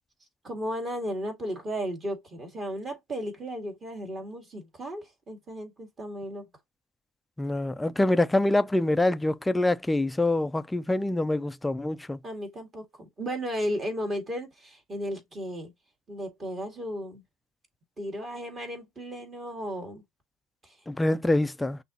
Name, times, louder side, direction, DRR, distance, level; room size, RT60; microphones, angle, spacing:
voice 1, 0.4-6.5 12.2-15.7 16.1-17.2 18.0-20.0 20.6-20.8, equal, 25° right, 1.9 m, -35 dB
voice 2, 7.4-12.2 20.9-21.8, left 2 dB, 10° left, 0.4 m, -25 dB
6.0 x 2.8 x 2.8 m
supercardioid pair, 120°, 0 cm